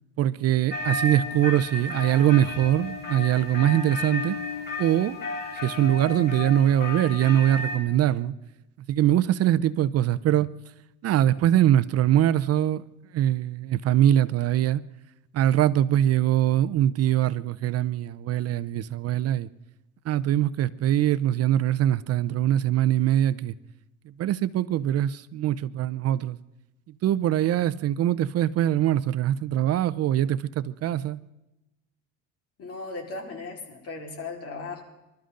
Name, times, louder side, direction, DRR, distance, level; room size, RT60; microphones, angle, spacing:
voice 1, 0.2-4.4 4.8-5.1 5.6-8.3 8.9-10.5 11.0-12.8 13.1-14.8 15.3-19.5 20.1-23.5 24.2-26.4 27.0-31.2, right 12 dB, 50° right, 0.6 m, -22 dB
sound 1, 0.7-7.8, left 2 dB, 30° left, 4.7 m, -33 dB
voice 2, 32.6-34.8, left 3 dB, 50° left, 4.5 m, -37 dB
26.5 x 13.0 x 3.8 m
cardioid pair, 135°, 31 cm